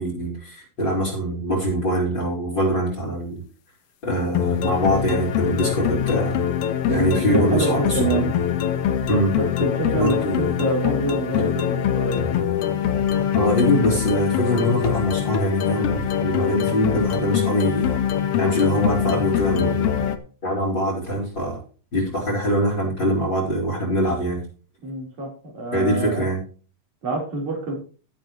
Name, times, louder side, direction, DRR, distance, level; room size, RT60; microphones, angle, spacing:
voice 1, 0.0-3.4 4.0-6.4 6.9-8.0 9.1-9.4 9.9-10.5 13.3-17.9 18.4-20.0 20.4-21.6 21.9-24.4 25.7-26.4, equal, 30° left, -4 dB, 5.1 m, -23 dB
sound 1, 4.3-20.2, left 9 dB, 70° left, 1.4 m, -23 dB
voice 2, 6.8-8.2 9.3-12.3 24.8-26.3 27.0-27.8, right 2 dB, 50° right, 0 dB, 5.3 m, -27 dB
16.5 x 8.3 x 3.1 m, 0.38 s
omnidirectional pair, 4.1 m